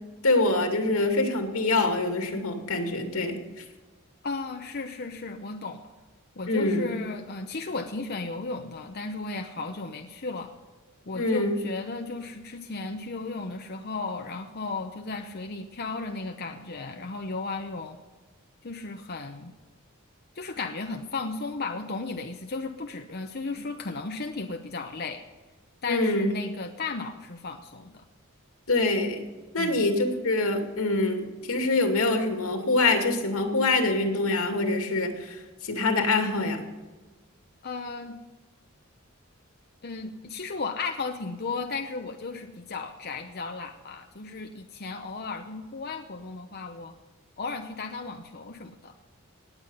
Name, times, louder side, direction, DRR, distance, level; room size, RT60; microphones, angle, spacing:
voice 1, 0.2-3.6 6.5-6.9 11.1-11.6 25.8-26.3 28.7-29.2 29.5-36.6, left 2 dB, 85° left, 4 dB, 2.5 m, -25 dB
voice 2, 4.2-5.8 6.4-10.5 11.1-18.0 18.6-19.5 20.3-25.2 25.8-28.0 29.6-29.9 37.6-38.2 39.8-46.9 47.4-48.9, left 3 dB, 50° left, 4 dB, 0.8 m, -35 dB
19.0 x 8.4 x 5.6 m, 1.2 s
head